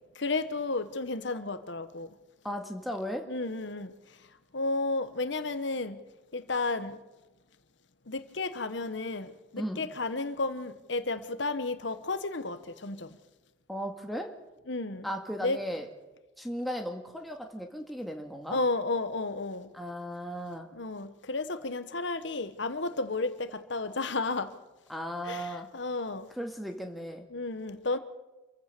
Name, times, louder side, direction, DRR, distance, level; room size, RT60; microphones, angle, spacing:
voice 1, 0.1-2.1 3.3-3.9 4.5-6.0 6.3-7.0 8.1-13.2 14.7-15.1 15.4-15.6 18.5-19.7 20.7-24.5 25.3-26.3 27.3-28.0, left 3 dB, 70° left, 1.2 m, -32 dB
voice 2, 2.4-3.3 9.6-9.9 13.7-14.3 15.0-15.9 16.4-18.6 19.7-20.7 24.9-25.7 26.4-27.3, equal, ahead, 1.9 m, -36 dB
27.0 x 15.0 x 6.8 m
head